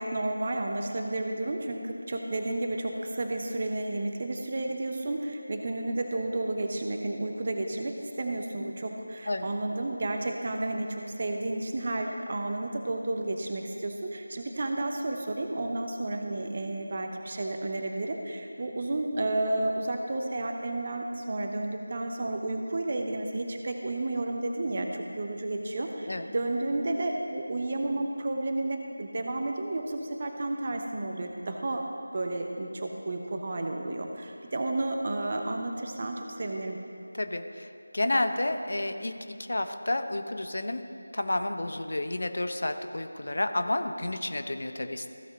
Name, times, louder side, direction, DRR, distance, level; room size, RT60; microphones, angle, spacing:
voice 1, 0.0-31.9 32.1-36.8, right 2 dB, 35° right, 3 dB, 0.9 m, -32 dB
voice 2, 37.1-39.2 39.5-40.8 41.1-45.1, left 1 dB, 55° left, 7 dB, 0.7 m, -30 dB
15.0 x 5.8 x 4.0 m, 2.4 s
figure-of-eight pair, 165°, 0 cm